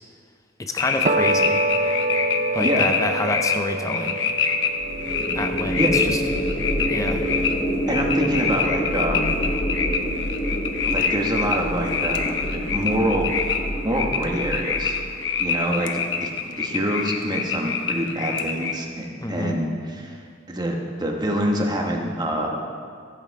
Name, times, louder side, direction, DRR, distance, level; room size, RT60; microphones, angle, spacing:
voice 1, 0.6-1.6 2.5-4.2 5.3-6.2 6.9-7.2 19.2-19.6, left 2 dB, 20° left, 5 dB, 0.6 m, -28 dB
sound 1, 0.8-18.8, left 5 dB, 90° left, 0.9 m, -26 dB
sound 2, 1.1-7.6, right 2 dB, 40° right, 0.6 m, -27 dB
voice 2, 2.6-2.9 5.8-5.9 7.9-9.3 10.9-13.3 13.8-15.0 15.4-15.9 16.2-20.2 20.5-22.6, equal, 25° right, 1 dB, 1.3 m, -26 dB
sound 3, 4.8-15.2, equal, 40° left, 2.0 m, -27 dB
15.0 x 7.9 x 4.8 m, 2.2 s
head